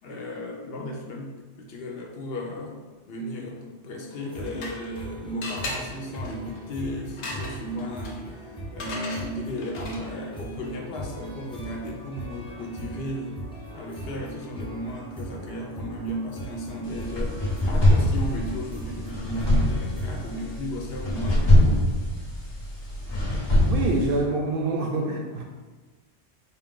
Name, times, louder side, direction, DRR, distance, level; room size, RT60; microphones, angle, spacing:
voice 1, 0.0-2.8 3.1-13.4 13.7-21.9, equal, 65° left, 1 dB, 0.8 m, -35 dB
sound 1, 4.1-5.0 5.4-10.2, left 2 dB, 85° left, 1.0 m, -38 dB
sound 2, 4.1-20.6, right 1 dB, 10° left, 0.3 m, -40 dB
sound 3, 16.8-24.2, left 1 dB, 25° left, 0.7 m, -23 dB
voice 2, 23.6-25.4, right 2 dB, 60° right, 1 dB, 0.7 m, -26 dB
4.1 x 2.3 x 3.6 m, 1.3 s
omnidirectional pair, 1.1 m